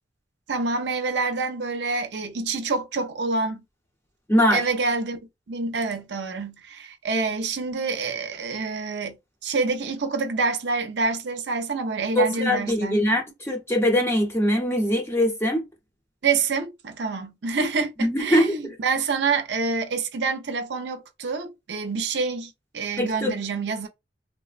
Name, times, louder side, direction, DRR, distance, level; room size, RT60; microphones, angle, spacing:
voice 1, 0.5-3.6 4.5-5.2 5.5-9.2 9.4-13.0 16.2-23.9, right 4 dB, 75° right, 0.5 m, -27 dB
voice 2, 4.3-4.6 12.1-15.7 18.0-18.7 23.0-23.3, equal, 15° left, 0.7 m, -22 dB
3.3 x 2.1 x 2.4 m
head